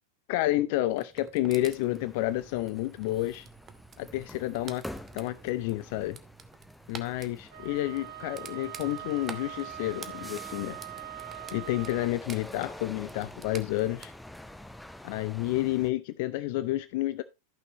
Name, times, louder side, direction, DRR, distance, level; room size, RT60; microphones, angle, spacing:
voice 1, 0.3-3.5 4.0-4.8 5.1-6.2 6.9-10.8 11.5-14.1 15.0-17.2, left 16 dB, 50° left, 0.4 m, -30 dB
sound 1, 0.9-14.1, right 6 dB, 25° right, 0.9 m, -49 dB
sound 2, 1.5-15.9, left 1 dB, 5° left, 0.6 m, -47 dB
Wind instrument woodwind instrument, 7.5-12.2, right 15 dB, 60° right, 1.0 m, -42 dB
14.0 x 6.0 x 2.9 m
figure-of-eight pair, 90°, 0 cm